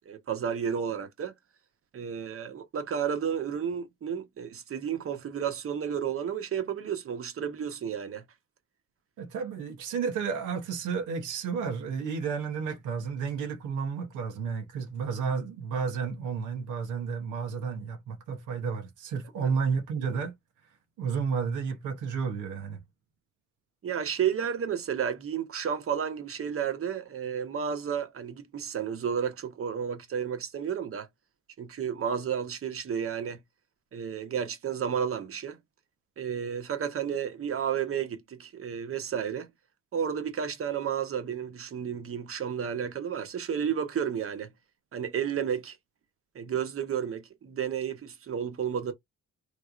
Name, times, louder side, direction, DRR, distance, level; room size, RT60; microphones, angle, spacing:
voice 1, 0.1-1.3 1.9-8.2 19.4-19.5 23.8-31.1 31.6-33.4 33.9-35.6 36.2-39.5 39.9-44.5 44.9-45.8 46.3-48.9, right 8 dB, 45° right, 1.0 m, -32 dB
voice 2, 9.2-20.3 21.0-22.8, right 6 dB, 90° right, 1.1 m, -32 dB
3.4 x 3.1 x 2.5 m
cardioid pair, 90°, 30 cm